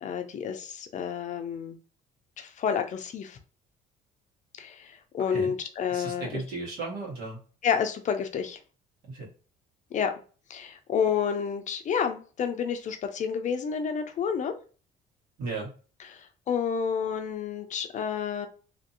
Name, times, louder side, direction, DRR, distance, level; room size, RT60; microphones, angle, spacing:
voice 1, 0.0-1.8 2.4-3.4 4.6-6.4 7.6-8.6 9.9-10.1 10.5-14.5 16.0-18.5, left 7 dB, 45° left, 7 dB, 0.5 m, -30 dB
voice 2, 5.9-7.4 9.1-9.3 15.4-15.7, right 3 dB, 70° right, -2 dB, 1.5 m, -35 dB
2.8 x 2.6 x 2.7 m, 0.37 s
cardioid pair, 110°, 17 cm